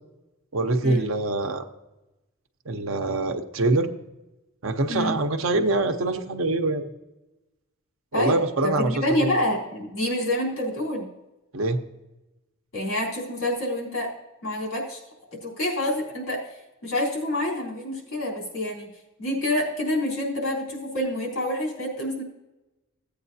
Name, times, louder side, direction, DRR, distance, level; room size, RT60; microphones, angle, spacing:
voice 1, 0.5-1.6 2.7-3.9 4.6-6.8 8.1-8.9 9.2-9.3 11.5-11.8, right 2 dB, 75° right, 6 dB, 0.8 m, -24 dB
voice 2, 8.6-11.1 12.7-14.1 14.4-15.0 15.3-16.4 16.8-18.9 19.2-22.2, left 1 dB, 70° left, -3 dB, 3.5 m, -27 dB
15.5 x 8.5 x 2.7 m, 1.0 s
head